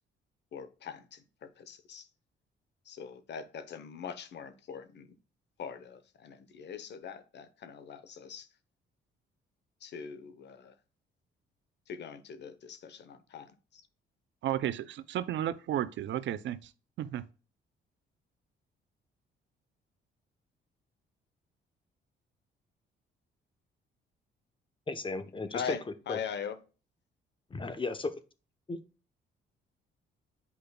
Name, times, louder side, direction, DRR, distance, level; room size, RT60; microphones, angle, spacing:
voice 1, 0.5-2.0 2.9-5.1 5.6-8.5 9.8-10.7 11.9-13.8 25.5-26.6, left 7 dB, 60° left, 0.9 m, -42 dB
voice 2, 14.4-16.7 17.0-17.2, right 11 dB, 70° right, 0.6 m, -33 dB
voice 3, 24.9-25.8 26.1-26.2 27.5-28.1 28.7-28.8, left 3 dB, 25° left, 0.9 m, -34 dB
8.5 x 5.1 x 2.3 m
cardioid pair, 90°, 20 cm